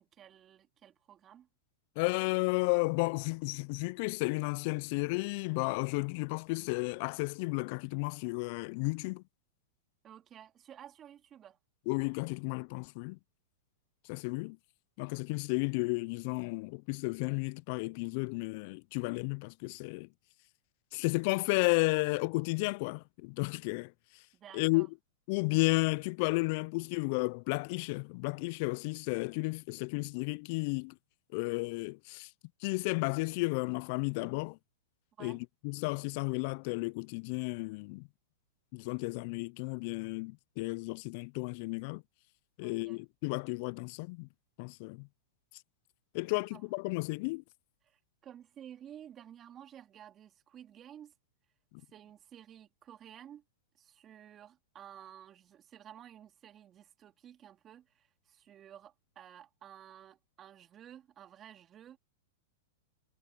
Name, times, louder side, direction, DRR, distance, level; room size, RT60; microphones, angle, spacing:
voice 1, 0.0-1.5 10.0-11.6 24.3-24.9 35.2-35.4 42.6-43.0 46.2-46.6 47.8-51.1 51.9-53.4 53.8-62.0, right 10 dB, 30° right, 2.7 m, -53 dB
voice 2, 2.0-9.2 11.9-13.2 14.0-14.6 15.0-20.1 20.9-24.2 24.5-24.9 25.3-30.9 31.3-32.3 32.6-34.6 35.2-35.4 35.6-38.1 38.7-42.0 42.6-44.3 44.6-45.1 46.1-47.4, left 28 dB, 50° left, 0.4 m, -33 dB
hypercardioid pair, 115°, 0 cm